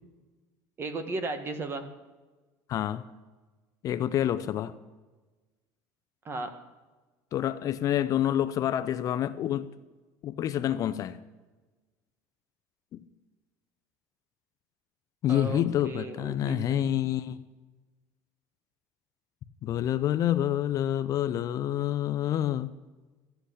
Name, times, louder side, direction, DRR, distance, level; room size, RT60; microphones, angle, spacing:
voice 1, 0.8-1.9 6.2-6.5 15.3-16.8, right 3 dB, 30° right, 8 dB, 1.5 m, -35 dB
voice 2, 2.7-3.1 3.8-4.7 7.3-9.7 10.2-11.2 12.9-13.0 15.2-17.4 19.6-22.7, left 11 dB, 45° left, 13 dB, 0.6 m, -28 dB
13.0 x 8.0 x 8.3 m, 1.2 s
cardioid pair, 130°, 8 cm